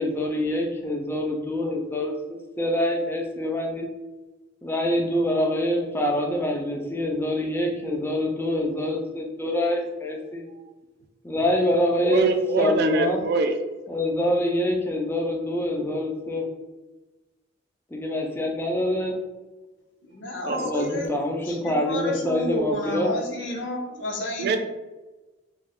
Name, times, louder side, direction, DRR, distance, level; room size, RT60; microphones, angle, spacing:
voice 1, 0.0-3.9 4.6-10.4 11.2-12.3 12.6-13.3 13.9-16.5 17.9-19.2 20.4-23.1, left 1 dB, 15° left, 1 dB, 0.4 m, -25 dB
voice 2, 12.0-13.6 20.5-20.9 24.4-24.6, right 3 dB, 60° right, 6 dB, 0.3 m, -24 dB
voice 3, 20.0-21.1 21.4-24.6, left 1 dB, 85° left, 0 dB, 0.6 m, -31 dB
2.4 x 2.3 x 3.4 m, 1.1 s
head